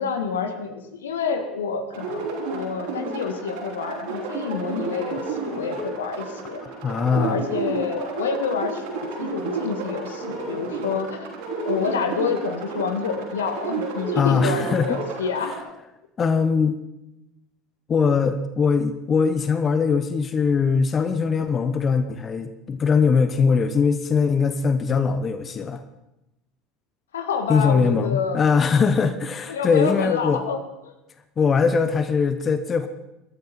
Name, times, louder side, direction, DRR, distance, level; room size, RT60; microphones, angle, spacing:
voice 1, 0.0-6.6 7.1-11.3 11.6-15.5 27.1-28.4 29.5-30.6, left 5 dB, 75° left, 7 dB, 1.7 m, -28 dB
sound 1, 1.9-15.6, right 3 dB, 65° right, 5.2 m, -31 dB
voice 2, 6.6-7.4 14.2-15.0 16.2-16.8 17.9-25.8 27.5-30.4 31.4-32.9, left 5 dB, 30° left, 10 dB, 1.1 m, -21 dB
22.0 x 13.0 x 4.4 m, 0.91 s
figure-of-eight pair, 70°, 0 cm